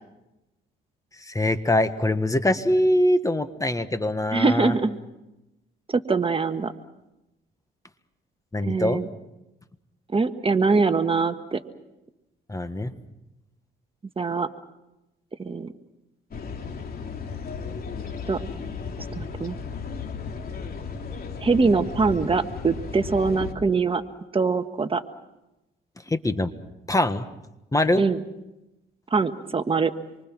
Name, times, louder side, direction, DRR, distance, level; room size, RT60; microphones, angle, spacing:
voice 1, 1.2-4.7 8.5-9.0 12.5-12.9 26.1-26.5 26.9-27.2 27.7-28.0, left 1 dB, 15° left, 10 dB, 1.5 m, -23 dB
voice 2, 4.3-5.0 5.9-6.7 8.6-9.1 10.1-11.6 14.2-14.5 15.4-15.7 18.3-18.4 19.1-19.5 21.4-24.0 24.3-25.0 28.0-28.2 29.1-29.9, right 4 dB, 30° right, 8 dB, 1.4 m, -23 dB
sound 1, 16.3-23.5, left 5 dB, 50° left, 3.2 m, -35 dB
26.5 x 24.5 x 6.1 m, 0.94 s
cardioid pair, 90°, 20 cm